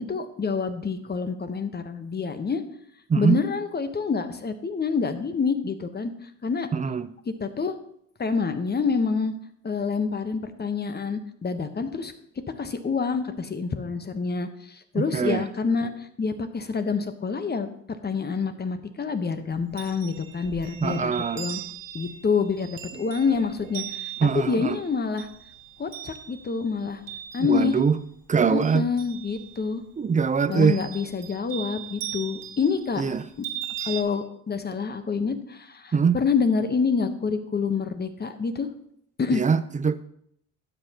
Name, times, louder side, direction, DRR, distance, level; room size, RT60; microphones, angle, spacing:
voice 1, 0.0-2.6 3.2-6.7 7.2-7.7 8.2-9.3 9.6-12.1 12.6-17.7 18.0-21.6 21.9-24.1 24.4-25.3 25.8-27.0 27.3-27.8 28.4-29.8 30.5-33.0 33.8-38.7 39.2-39.4, left 5 dB, 25° left, 1.1 m, -27 dB
voice 2, 6.7-7.1 14.9-15.4 20.8-21.5 24.2-24.8 27.4-28.0 28.3-28.9 30.0-30.8 33.0-33.2 35.9-36.2 39.3-39.9, right 6 dB, 20° right, 0.5 m, -23 dB
Chime, 19.5-28.0 28.3-29.7 30.5-34.0, right 11 dB, 60° right, 2.0 m, -39 dB
12.0 x 7.9 x 2.9 m
supercardioid pair, 75°, 38 cm